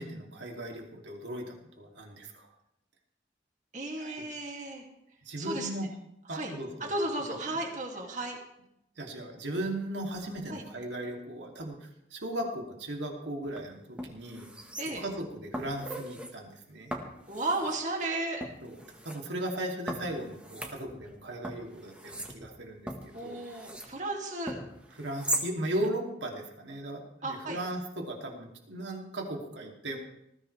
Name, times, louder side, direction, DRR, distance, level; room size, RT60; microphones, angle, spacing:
voice 1, 0.0-1.4 1.8-2.5 4.0-4.2 5.2-5.9 6.3-6.9 7.4-7.5 9.0-14.5 15.0-16.9 18.6-18.8 19.0-22.9 23.2-23.4 25.0-30.0, right 1 dB, 85° right, 1 dB, 3.0 m, -37 dB
voice 2, 3.7-4.8 5.4-5.7 6.3-6.5 6.8-8.4 10.5-10.6 14.8-15.0 17.3-18.4 23.1-24.6 27.2-27.6, right 2 dB, 40° right, 1 dB, 2.6 m, -34 dB
sound 1, 13.4-13.6 14.0-15.2 15.5-16.3 16.9-17.8 18.4-19.2 19.9-21.2 21.4-23.9 24.5-25.5 25.8-25.9, right 1 dB, 5° right, 1.5 m, -39 dB
19.5 x 15.5 x 3.4 m, 0.81 s
head